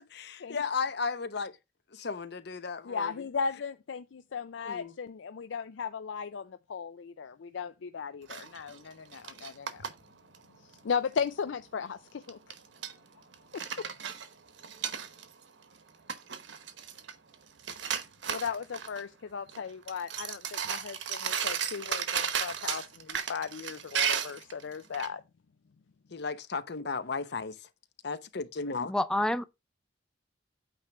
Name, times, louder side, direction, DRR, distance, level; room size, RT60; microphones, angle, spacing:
voice 1, 0.0-1.5 1.9-3.1 4.6-4.9 26.1-27.5 28.0-28.9, left 4 dB, 65° left, 0.8 m, -34 dB
voice 2, 2.9-9.9 10.6-12.4 13.5-13.6 18.3-25.2, left 6 dB, 85° left, 0.5 m, -36 dB
sound 1, 8.3-9.9 10.3-10.4 10.7-11.2 12.3-12.9 13.3-15.4 15.8-15.9 16.1-17.3 17.6-19.0 19.5-19.6 19.9-25.1, right 7 dB, 75° right, 1.0 m, -34 dB
voice 3, 28.9-29.5, left 1 dB, 5° left, 0.5 m, -27 dB
8.8 x 3.3 x 5.8 m
head